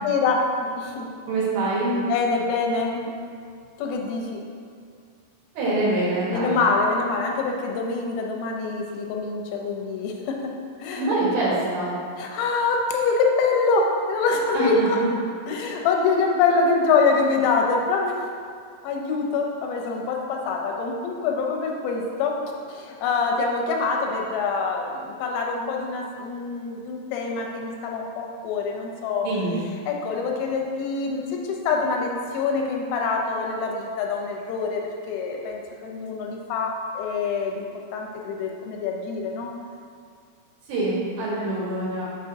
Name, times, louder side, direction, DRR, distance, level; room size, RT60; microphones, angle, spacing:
voice 1, 0.0-1.1 2.1-3.2 3.8-4.4 6.3-10.5 10.8-11.2 12.2-15.0 15.5-18.2 18.8-29.3 29.9-37.7 37.9-39.5, left 4 dB, 90° left, 1 dB, 3.5 m, -25 dB
voice 2, 1.3-1.9 5.5-6.6 11.0-11.9 14.5-15.0 29.2-29.6 40.7-42.0, right 2 dB, 70° right, -8 dB, 3.3 m, -25 dB
7.6 x 6.0 x 2.8 m, 2.2 s
omnidirectional pair, 5.9 m